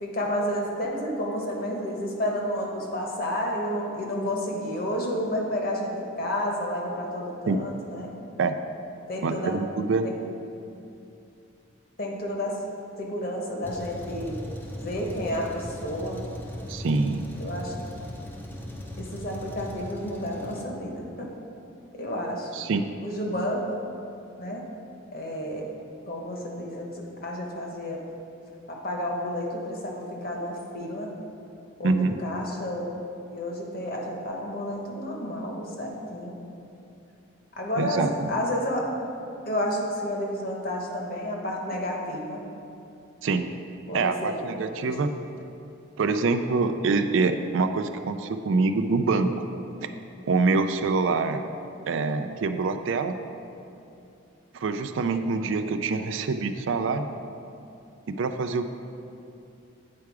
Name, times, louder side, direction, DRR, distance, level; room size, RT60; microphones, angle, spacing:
voice 1, 0.0-8.1 9.1-9.6 10.0-10.2 12.0-12.6 13.0-14.4 14.8-16.2 17.4-17.8 19.0-21.3 21.9-22.5 23.0-23.6 24.4-24.6 25.1-25.7 26.1-28.0 28.7-31.1 31.8-33.0 33.3-36.3 37.6-38.8 39.5-42.4 43.9-44.4 44.8-44.9, left 1 dB, 45° left, 0 dB, 1.0 m, -31 dB
voice 2, 9.2-10.1 16.7-17.2 22.5-22.9 31.8-32.2 37.8-38.3 43.2-43.5 43.9-45.1 46.0-49.3 49.8-49.9 50.3-51.4 51.9-53.2 54.5-57.1 58.1-58.7, right 4 dB, 70° right, 8 dB, 0.4 m, -25 dB
Truck, 13.6-20.6, left 1 dB, 10° left, 0.5 m, -38 dB
8.7 x 4.7 x 4.8 m, 2.8 s
head